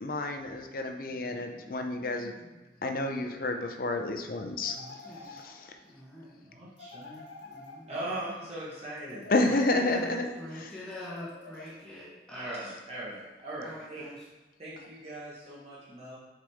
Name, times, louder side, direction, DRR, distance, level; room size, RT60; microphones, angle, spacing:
voice 1, 0.0-2.4 2.8-4.8 5.2-5.7 9.3-10.7, left 2 dB, 55° left, 5 dB, 0.6 m, -30 dB
voice 2, 1.1-2.8 4.7-5.4 5.8-6.4 7.4-7.9 9.4-12.6 13.6-14.3, left 1 dB, 5° left, -9 dB, 1.5 m, -45 dB
sound 1, 4.6-5.9 6.8-8.3 9.0-10.2 10.9-12.1, left 3 dB, 85° left, 0.7 m, -49 dB
voice 3, 6.4-7.2 7.9-9.6 10.2-10.3 12.3-14.0 14.6-16.2, right 1 dB, 35° right, -8 dB, 1.3 m, -40 dB
6.4 x 4.8 x 3.5 m, 1.2 s
head